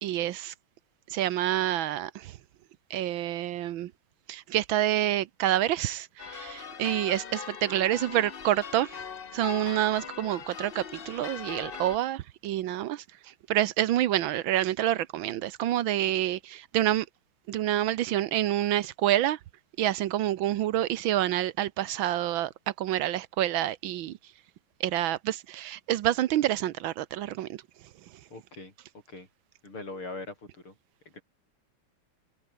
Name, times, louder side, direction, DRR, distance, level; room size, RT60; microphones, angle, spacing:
voice 1, 0.0-0.5 1.1-2.4 2.9-3.9 4.3-9.0 9.3-17.1 17.5-19.4 19.8-24.2 24.8-27.6 28.1-28.2, right 13 dB, 75° right, 1.5 m, -28 dB
sound 1, 6.2-12.0, left 6 dB, 40° left, 0.8 m, -40 dB
voice 2, 28.3-28.7 29.1-29.3 29.6-30.7 31.1-31.2, left 2 dB, 80° left, 8.9 m, -41 dB
omnidirectional pair, 2.3 m